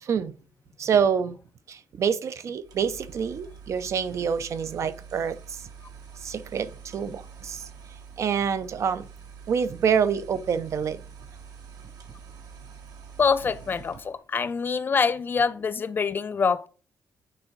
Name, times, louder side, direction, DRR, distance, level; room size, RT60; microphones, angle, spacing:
voice 1, 0.0-0.3 0.8-1.4 1.7-5.6 6.2-7.7 8.2-9.1 9.5-11.0, right 7 dB, 50° right, 0.5 m, -26 dB
sound 1, 2.6-14.2, right 6 dB, 70° right, 1.3 m, -46 dB
voice 2, 13.2-16.7, left 5 dB, 30° left, 0.4 m, -25 dB
9.0 x 3.7 x 4.5 m
wide cardioid pair, 175°, 6 cm